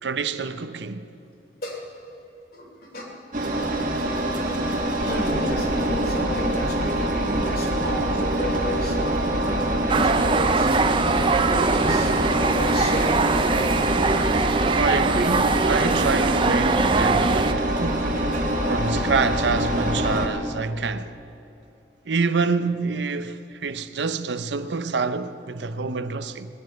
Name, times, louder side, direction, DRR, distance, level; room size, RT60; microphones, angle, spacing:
voice 1, 0.0-1.1 14.6-18.2 18.7-21.1 22.1-26.5, right 4 dB, 80° right, 0.7 m, -27 dB
voice 2, 1.6-2.1 2.5-3.1 5.0-10.7 11.5-13.2, left 1 dB, 55° left, 3.3 m, -32 dB
Engine, 3.3-20.3, right 1 dB, 50° right, 1.8 m, -24 dB
sound 1, 9.9-17.5, right 3 dB, 30° right, 0.5 m, -22 dB
19.0 x 7.7 x 9.5 m
head